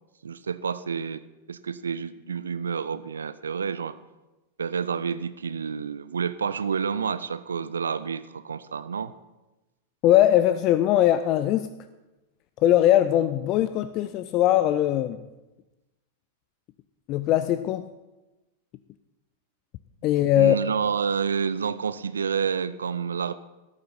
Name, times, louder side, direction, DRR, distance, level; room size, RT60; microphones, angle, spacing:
voice 1, 0.2-1.2 1.5-4.0 4.6-9.1 20.3-23.3, right 6 dB, 70° right, 15 dB, 0.5 m, -29 dB
voice 2, 10.0-11.7 12.6-15.3 17.1-17.9 20.0-20.6, left 12 dB, 40° left, 12 dB, 0.4 m, -21 dB
13.5 x 11.5 x 4.4 m, 1.1 s
figure-of-eight pair, 90°, 0 cm